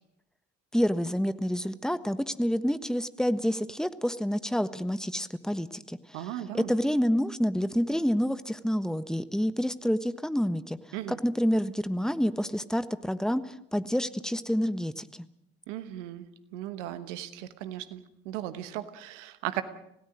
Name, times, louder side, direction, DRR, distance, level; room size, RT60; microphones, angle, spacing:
voice 1, 0.7-6.3 6.5-10.8 11.1-15.1, equal, ahead, 13 dB, 1.3 m, -28 dB
voice 2, 6.1-6.7 10.9-11.2 15.7-19.6, right 13 dB, 85° right, 12 dB, 1.2 m, -37 dB
27.0 x 17.0 x 6.4 m, 0.78 s
hypercardioid pair, 40°, 35 cm